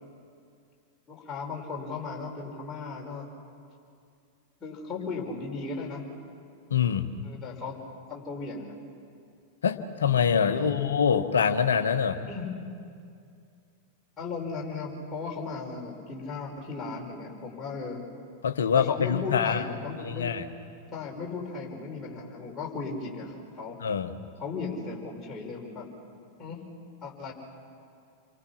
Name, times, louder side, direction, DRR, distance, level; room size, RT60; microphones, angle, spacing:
voice 1, 1.1-3.3 4.6-6.0 7.2-7.8 8.1-8.7 10.5-10.9 12.3-12.5 14.2-18.0 18.7-20.4 20.9-23.8 24.4-25.9 26.4-26.6 27.0-27.3, left 4 dB, 20° left, -2 dB, 5.6 m, -36 dB
voice 2, 6.7-7.1 9.6-12.2 18.4-19.6 20.0-20.4 23.8-24.2, left 7 dB, 65° left, 9 dB, 1.2 m, -25 dB
29.0 x 23.5 x 5.9 m, 2.4 s
figure-of-eight pair, 90°, 0 cm